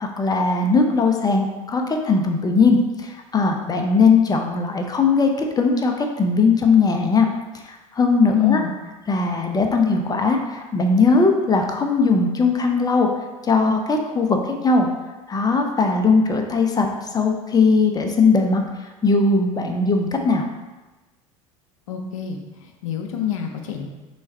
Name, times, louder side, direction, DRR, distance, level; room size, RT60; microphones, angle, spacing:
voice 1, 0.0-7.3 7.6-8.6 9.1-13.1 13.4-14.9 15.3-18.6 19.0-20.5, left 4 dB, 20° left, 3 dB, 0.6 m, -19 dB
voice 2, 8.3-8.7 21.9-22.4 22.8-23.9, left 11 dB, 75° left, 3 dB, 0.6 m, -24 dB
3.3 x 3.2 x 4.3 m, 1.2 s
hypercardioid pair, 75°, 17 cm